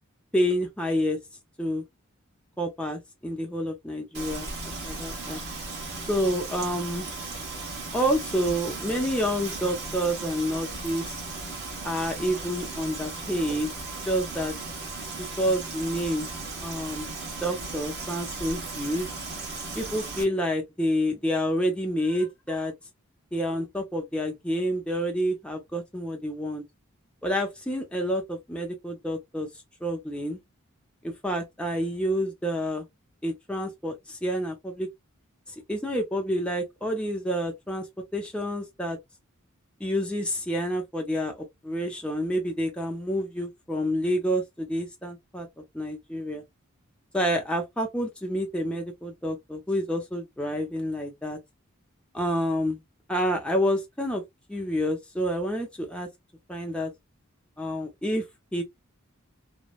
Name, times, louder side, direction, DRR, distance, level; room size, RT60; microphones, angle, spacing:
voice 1, 0.3-1.2 1.6-1.8 2.6-5.4 6.1-7.1 7.9-11.2 11.8-13.7 14.0-14.5 15.2-16.3 16.6-17.1 17.4-19.1 19.8-22.7 23.3-26.6 27.2-29.5 29.8-30.4 31.0-32.9 33.2-34.9 35.7-37.8 38.1-39.0 39.8-45.5 45.7-46.4 47.1-51.4 52.1-52.8 53.1-54.2 54.5-56.1 56.5-56.9 57.6-58.2 58.5-58.6, equal, 5° left, 0.5 m, -28 dB
Frying (food), 4.1-20.2, right 3 dB, 50° right, 1.4 m, -36 dB
3.0 x 2.1 x 2.3 m
head